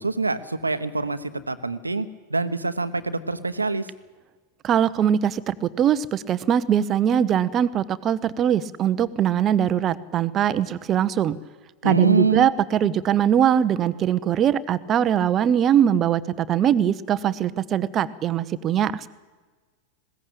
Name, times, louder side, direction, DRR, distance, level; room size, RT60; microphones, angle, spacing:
voice 1, 0.0-3.9 11.8-12.5, right 3 dB, 80° right, 12 dB, 1.1 m, -25 dB
voice 2, 4.6-11.4 11.8-19.1, right 9 dB, 30° right, 15 dB, 0.9 m, -21 dB
20.5 x 17.5 x 8.7 m, 1.4 s
figure-of-eight pair, 90°, 0 cm